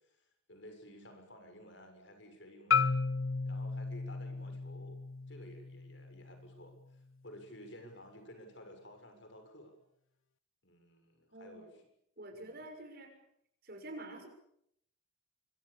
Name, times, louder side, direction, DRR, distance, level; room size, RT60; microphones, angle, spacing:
voice 1, 0.0-3.0 3.5-5.0 5.3-9.7 10.6-11.9 12.3-12.6, equal, 60° left, 6 dB, 6.9 m, -54 dB
Marimba xylophone, 2.7-6.9, left 5 dB, 80° left, 1.0 m, -34 dB
voice 2, 11.3-11.7 12.2-13.1 13.6-14.3, right 1 dB, 50° right, 5 dB, 6.4 m, -47 dB
26.5 x 25.0 x 7.0 m, 0.74 s
head